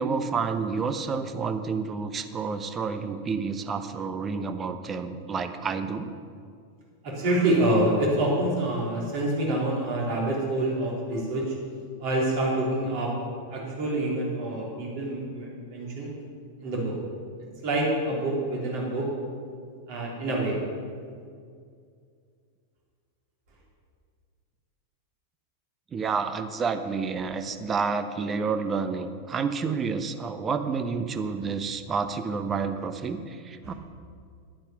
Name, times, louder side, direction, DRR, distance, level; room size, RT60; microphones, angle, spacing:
voice 1, 0.0-6.1 25.9-33.7, right 5 dB, 20° right, 9 dB, 0.8 m, -29 dB
voice 2, 7.0-11.5 12.0-13.1 13.5-16.1 16.6-16.9 17.6-19.1 19.9-20.6 33.6-33.7, right 1 dB, 45° right, -3 dB, 3.8 m, -26 dB
10.0 x 8.9 x 7.0 m, 2.2 s
figure-of-eight pair, 90°, 0 cm